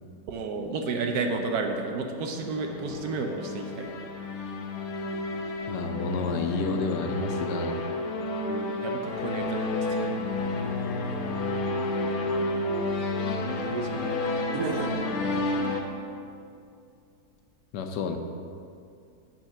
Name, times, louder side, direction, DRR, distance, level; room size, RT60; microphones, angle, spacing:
voice 1, 0.3-3.9 8.5-10.2 13.7-14.2 14.5-14.9, right 3 dB, 70° right, 3 dB, 1.2 m, -32 dB
sound 1, 1.9-15.8, left 2 dB, 65° left, 1.1 m, -31 dB
voice 2, 5.7-7.8 17.7-18.2, left 3 dB, 90° left, 5 dB, 1.3 m, -30 dB
8.9 x 4.4 x 5.7 m, 2.5 s
omnidirectional pair, 1.8 m